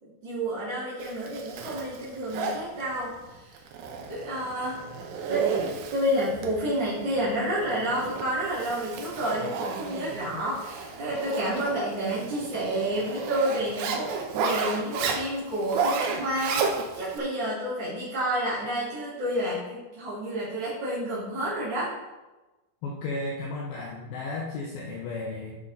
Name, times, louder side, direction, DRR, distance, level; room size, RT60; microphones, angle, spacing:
voice 1, 0.0-3.6 4.1-4.8 5.2-5.5 5.9-21.9, right 1 dB, 30° right, -12 dB, 2.8 m, -30 dB
Zipper (clothing), 1.0-17.2, right 5 dB, 75° right, 2.8 m, -33 dB
voice 2, 22.8-25.6, left 3 dB, 75° left, -3 dB, 2.1 m, -34 dB
11.0 x 5.9 x 4.2 m, 1.1 s
omnidirectional pair, 5.5 m